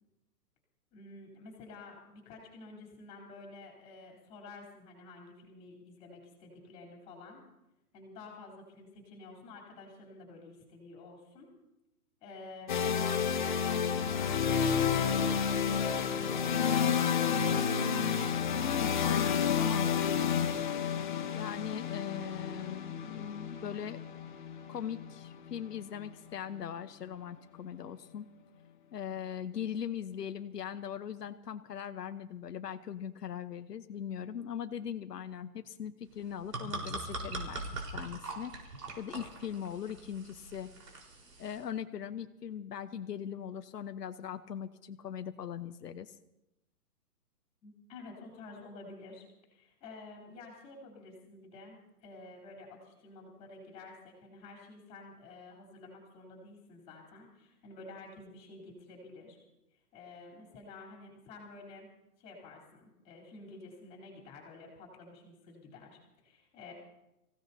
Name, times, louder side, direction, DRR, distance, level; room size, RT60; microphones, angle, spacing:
voice 1, 0.9-7.4 7.9-11.5 12.2-13.1 13.4-17.9 47.6-59.4 59.9-61.9 62.2-66.7, left 3 dB, 15° left, 0 dB, 3.4 m, -50 dB
sound 1, 12.7-26.5, left 7 dB, 30° left, 1.0 m, -30 dB
voice 2, 18.5-20.7 21.3-24.0 24.7-28.3 28.9-38.5 39.0-40.7 41.4-46.1, left 9 dB, 90° left, 8 dB, 1.0 m, -40 dB
sound 2, 36.2-41.6, right 2 dB, 85° right, 4.5 m, -42 dB
26.0 x 16.0 x 2.8 m, 0.92 s
hypercardioid pair, 170°, 46 cm